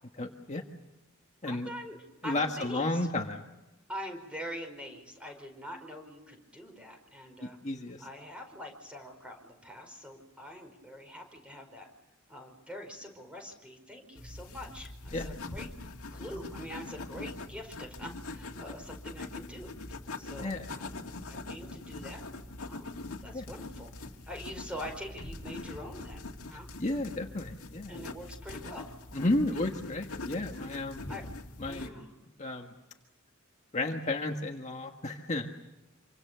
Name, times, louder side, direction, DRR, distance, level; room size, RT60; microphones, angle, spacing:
voice 1, 0.2-0.6 1.4-1.7 2.2-3.4 7.4-8.1 15.1-15.3 20.4-20.7 23.3-23.5 26.5-28.0 29.1-31.0 31.6-31.9 32.4-32.7 33.7-35.5, left 2 dB, 35° left, 2 dB, 1.6 m, -32 dB
voice 2, 1.4-2.9 3.9-7.6 8.0-11.9 12.3-15.7 16.1-19.7 20.2-21.0 21.3-22.2 22.7-23.9 24.3-26.7 27.9-28.9 29.5-29.7 31.1-31.2 31.7-32.1, equal, 5° right, 4 dB, 5.1 m, -44 dB
sound 1, 14.1-31.9, left 2 dB, 90° left, 2.1 m, -43 dB
27.0 x 25.0 x 6.9 m, 1.0 s
head